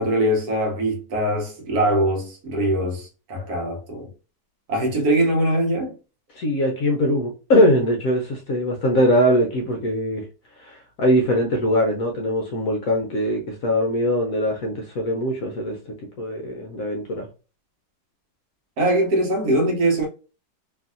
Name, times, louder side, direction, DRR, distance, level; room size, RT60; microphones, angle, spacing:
voice 1, 0.0-4.1 4.7-6.0 18.8-20.1, right 1 dB, 65° right, 1.2 m, -22 dB
voice 2, 6.3-10.2 10.6-15.8 16.2-17.3, equal, 65° left, 0.9 m, -21 dB
3.0 x 2.6 x 2.4 m
omnidirectional pair, 1.9 m